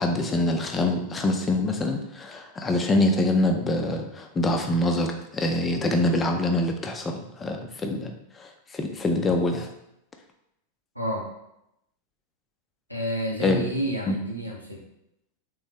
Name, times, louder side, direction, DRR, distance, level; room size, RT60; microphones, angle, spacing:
voice 1, 0.0-9.7 13.4-13.6 14.1-14.2, left 2 dB, 20° left, 3 dB, 0.5 m, -25 dB
voice 2, 10.9-11.3 12.9-14.8, equal, 90° right, -2 dB, 0.8 m, -30 dB
3.5 x 3.0 x 3.4 m, 0.82 s
figure-of-eight pair, 90°, 0 cm